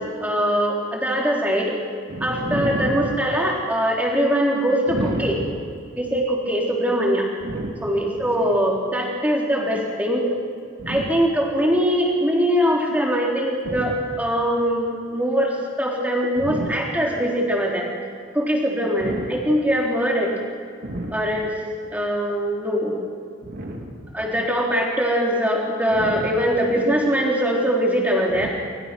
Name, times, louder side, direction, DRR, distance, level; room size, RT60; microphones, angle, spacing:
voice 1, 0.0-1.8 2.2-5.3 6.0-7.2 7.8-10.3 10.9-17.9 18.3-20.3 21.1-21.5 21.9-23.0 24.1-28.5, equal, 10° right, -2 dB, 4.0 m, -22 dB
voice 2, 2.1-3.2 4.9-5.6 7.4-8.5 10.8-11.3 13.6-13.9 16.4-16.7 19.0-19.3 20.8-21.2 23.4-24.1 25.9-26.4 28.3-28.5, right 1 dB, 55° right, -1 dB, 2.4 m, -30 dB
25.0 x 21.5 x 6.2 m, 2.3 s
head